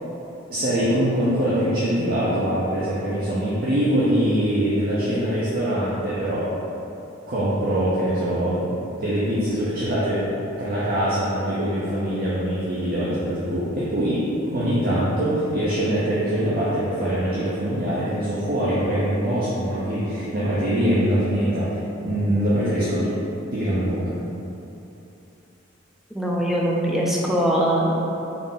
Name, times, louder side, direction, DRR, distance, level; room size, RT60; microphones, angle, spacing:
voice 1, 0.5-6.5 7.3-10.2 10.6-23.1 23.5-24.2, right 1 dB, 50° right, -9 dB, 0.6 m, -23 dB
voice 2, 26.1-28.0, equal, ahead, -4 dB, 0.4 m, -22 dB
3.8 x 2.5 x 3.6 m, 2.9 s
head